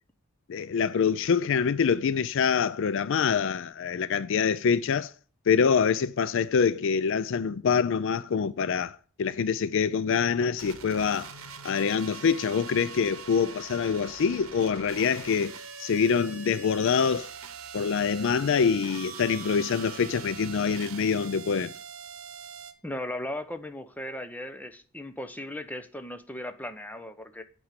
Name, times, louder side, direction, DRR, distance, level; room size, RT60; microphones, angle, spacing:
voice 1, 0.5-5.1 5.5-11.3 11.6-17.3 17.7-21.7, left 6 dB, 60° left, 0.4 m, -25 dB
sound 1, 10.6-22.7, right 6 dB, 75° right, 1.0 m, -43 dB
voice 2, 22.8-27.4, left 1 dB, 10° left, 0.8 m, -37 dB
8.7 x 5.4 x 7.4 m
head